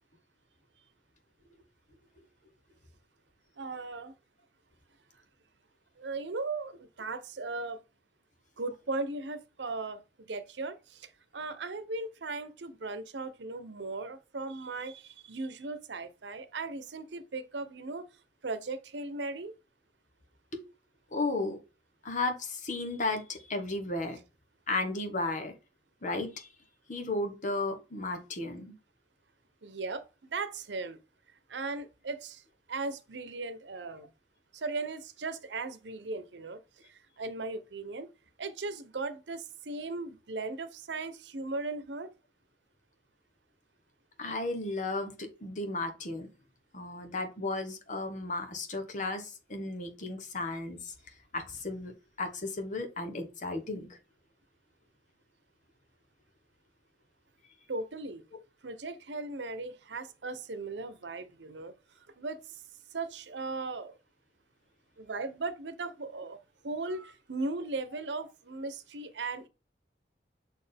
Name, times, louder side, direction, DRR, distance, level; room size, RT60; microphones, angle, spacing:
voice 1, 3.6-4.1 6.0-7.8 8.6-18.1 18.4-19.5 29.6-31.0 31.5-32.4 32.7-34.1 34.5-38.1 38.4-42.1 57.7-58.2 58.6-61.7 62.2-62.6 62.9-64.0 65.0-66.4 66.6-69.5, right 3 dB, 85° right, 0.8 m, -37 dB
voice 2, 21.1-21.6 22.0-24.2 24.7-25.5 26.0-26.5 26.9-28.7 44.2-46.3 46.7-50.9 51.3-51.9 52.2-53.9, left 2 dB, 45° left, 1.4 m, -34 dB
6.3 x 4.5 x 3.4 m
head